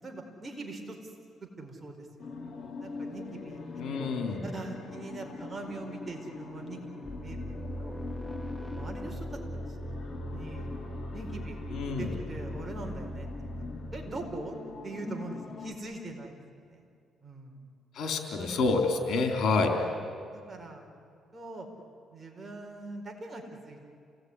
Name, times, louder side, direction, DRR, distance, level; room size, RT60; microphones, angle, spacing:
voice 1, 0.0-1.0 1.4-2.3 2.8-3.6 4.0-4.1 4.4-7.5 7.8-8.0 8.7-9.4 10.3-10.7 11.1-11.6 12.0-13.3 13.9-14.6 14.8-16.9 17.2-17.6 18.4-18.6 19.8-20.0 20.3-20.9 21.3-21.7 22.1-23.9, right 2 dB, 30° right, 2 dB, 4.7 m, -42 dB
sound 1, 2.2-15.8, left 4 dB, 40° left, 3.4 m, -43 dB
voice 2, 3.8-4.4 11.7-12.2 18.0-19.7, left 4 dB, 70° left, 4 dB, 3.8 m, -28 dB
sound 2, 7.0-14.5, equal, 5° left, 2.1 m, -39 dB
28.0 x 18.5 x 9.8 m, 2.3 s
cardioid pair, 90°, 0 cm